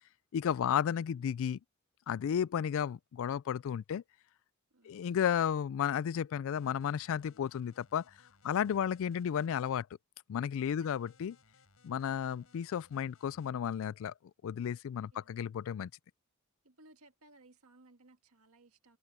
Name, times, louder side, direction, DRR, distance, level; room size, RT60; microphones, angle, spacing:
voice 1, 0.3-1.6 2.1-4.0 4.8-8.0 8.4-9.9 10.3-11.4 11.8-14.1 14.4-15.9, left 8 dB, 65° left, 0.3 m, -33 dB
voice 2, 4.7-5.1 8.5-8.7 10.8-10.9 11.9-12.2 15.1-15.4 16.6-19.0, right 2 dB, 75° right, 2.0 m, -62 dB
sound 1, 6.4-9.8 10.7-13.5, left 3 dB, 85° left, 4.6 m, -66 dB
head